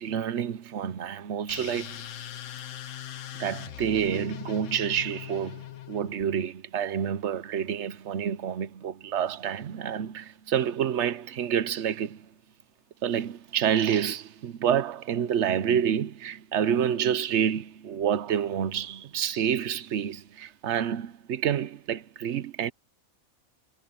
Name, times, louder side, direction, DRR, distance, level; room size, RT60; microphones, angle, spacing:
voice 1, 0.0-2.1 3.4-12.3 13.0-22.7, right 9 dB, 60° right, 1.0 m, -28 dB
sound 1, 1.5-6.2, left 12 dB, 65° left, 1.1 m, -40 dB
omnidirectional pair, 1.5 m